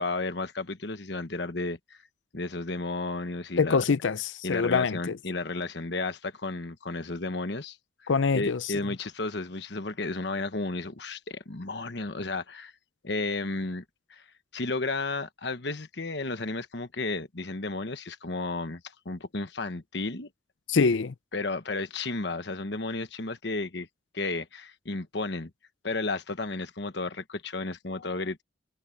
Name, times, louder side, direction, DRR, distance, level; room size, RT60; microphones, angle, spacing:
voice 1, 0.0-2.0 2.3-3.8 4.4-7.8 8.0-12.7 13.0-13.8 14.1-14.2 14.5-20.3 21.3-23.9 24.1-25.5 25.8-28.4, left 3 dB, 60° left, 1.2 m, -33 dB
voice 2, 3.6-5.2 8.1-8.7 20.7-21.1, left 5 dB, 75° left, 0.6 m, -25 dB
head